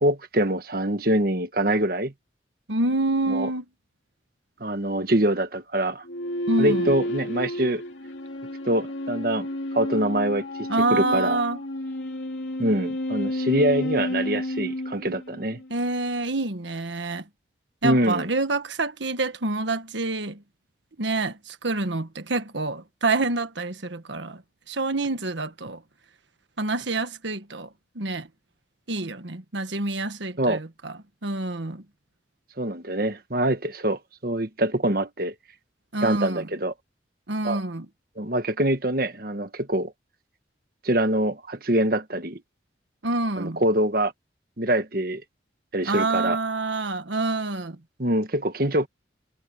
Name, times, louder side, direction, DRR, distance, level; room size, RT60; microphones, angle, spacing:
voice 1, 0.0-2.1 3.3-3.5 4.6-6.0 6.6-7.8 8.6-11.4 12.6-15.6 17.8-18.3 30.4-30.6 32.6-35.3 36.0-36.7 37.4-37.6 38.2-39.9 40.8-42.4 43.4-44.1 44.6-45.2 45.7-46.4 48.0-48.9, right 1 dB, 50° right, 1.5 m, -24 dB
voice 2, 2.7-3.6 6.5-6.9 10.7-11.6 15.7-17.2 17.8-20.4 21.0-24.4 24.7-25.8 26.6-27.7 27.9-28.3 28.9-30.9 31.2-31.8 35.9-36.5 37.3-37.9 43.0-43.6 45.9-47.8, right 2 dB, 75° right, 1.5 m, -27 dB
sound 1, 6.0-15.7, left 1 dB, 75° left, 2.8 m, -30 dB
head